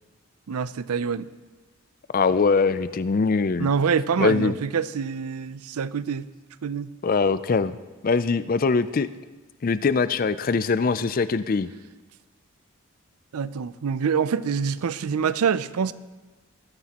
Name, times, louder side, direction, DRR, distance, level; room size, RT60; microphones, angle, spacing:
voice 1, 0.5-1.3 3.6-6.3 6.6-6.9 13.3-15.9, right 6 dB, 85° right, 0.5 m, -25 dB
voice 2, 2.1-3.7 4.2-4.5 7.0-7.8 8.0-9.1 9.6-11.7, left 4 dB, 40° left, 0.4 m, -22 dB
20.5 x 13.5 x 2.9 m
head